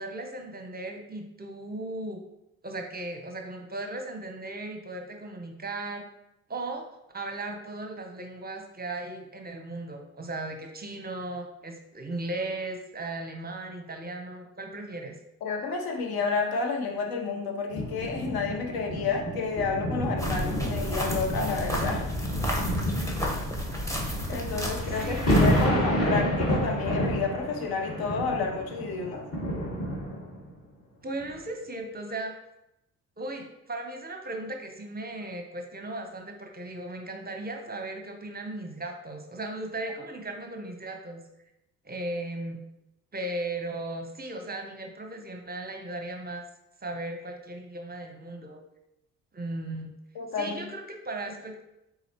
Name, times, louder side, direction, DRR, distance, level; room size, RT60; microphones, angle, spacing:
voice 1, 0.0-2.2 2.6-6.1 6.5-6.8 7.1-15.2 25.0-25.4 31.0-32.3 33.2-41.2 41.8-42.6 43.1-46.4 46.8-48.6 49.3-49.9 50.4-51.6, right 2 dB, 25° right, 4 dB, 0.7 m, -36 dB
voice 2, 15.4-22.1 24.3-29.2 50.1-50.7, left 4 dB, 65° left, 2 dB, 0.9 m, -30 dB
sound 1, 17.7-30.5 31.2-31.3, equal, 35° left, 1.5 m, -29 dB
sound 2, 20.2-25.7, equal, 10° left, 1.0 m, -32 dB
4.1 x 3.9 x 2.9 m, 0.86 s
hypercardioid pair, 55°, 39 cm